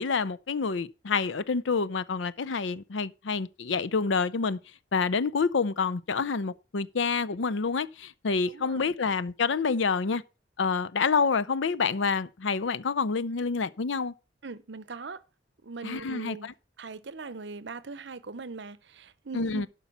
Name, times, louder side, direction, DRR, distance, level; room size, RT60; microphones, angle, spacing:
voice 1, 0.0-4.6 4.9-10.2 10.6-14.1 15.8-16.5 19.3-19.7, left 5 dB, 80° left, 0.6 m, -28 dB
voice 2, 8.5-8.9 14.4-15.2 15.6-16.5 16.8-19.7, right 4 dB, 70° right, 0.8 m, -41 dB
11.5 x 5.4 x 5.4 m
head